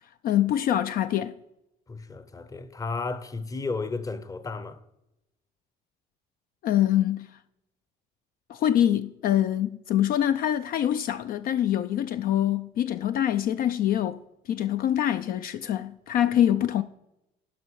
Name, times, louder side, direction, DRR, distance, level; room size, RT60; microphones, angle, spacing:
voice 1, 0.2-1.3 6.6-7.3 8.5-14.2 14.5-16.8, left 11 dB, 60° left, 0.4 m, -24 dB
voice 2, 1.9-4.8, left 3 dB, 20° left, 0.7 m, -33 dB
12.0 x 5.2 x 4.7 m
cardioid pair, 110°, 17 cm